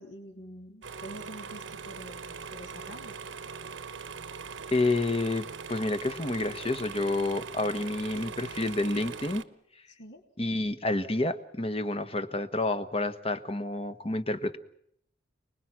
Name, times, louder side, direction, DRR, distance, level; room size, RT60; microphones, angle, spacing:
voice 1, 0.0-3.2 9.9-10.2, equal, 65° left, 5 dB, 3.2 m, -47 dB
sound 1, 0.8-9.4, right 6 dB, 90° right, 1.1 m, -41 dB
voice 2, 4.7-9.4 10.4-14.6, left 2 dB, 30° left, 10 dB, 1.2 m, -29 dB
29.5 x 20.5 x 6.1 m, 0.71 s
head